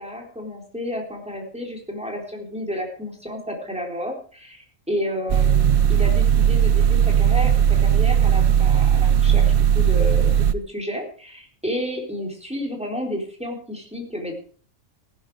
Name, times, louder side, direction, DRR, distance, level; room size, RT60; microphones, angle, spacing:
voice 1, 0.0-9.5 9.7-14.3, equal, 5° right, 0 dB, 3.9 m, -31 dB
sound 1, 5.3-10.5, right 9 dB, 50° right, 0.8 m, -17 dB
15.5 x 11.5 x 4.9 m, 0.43 s
omnidirectional pair, 1.5 m